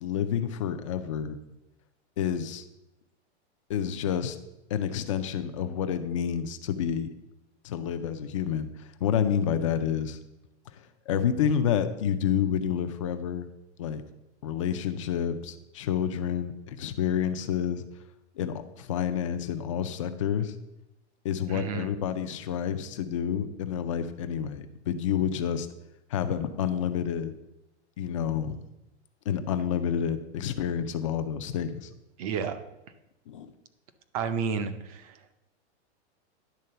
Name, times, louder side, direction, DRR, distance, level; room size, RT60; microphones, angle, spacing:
voice 1, 0.0-1.4 2.2-2.6 3.7-4.4 4.7-7.1 7.6-10.2 10.7-13.5 13.8-14.0 14.4-17.8 18.4-20.5 21.2-25.7 26.1-27.3 28.0-28.6 29.3-31.9 33.3-33.5, left 8 dB, 30° left, 9 dB, 0.3 m, -29 dB
voice 2, 21.5-21.9 32.2-32.6 34.1-35.2, right 6 dB, 30° right, 10 dB, 0.5 m, -31 dB
10.5 x 3.7 x 6.6 m, 0.94 s
supercardioid pair, 165°, 36 cm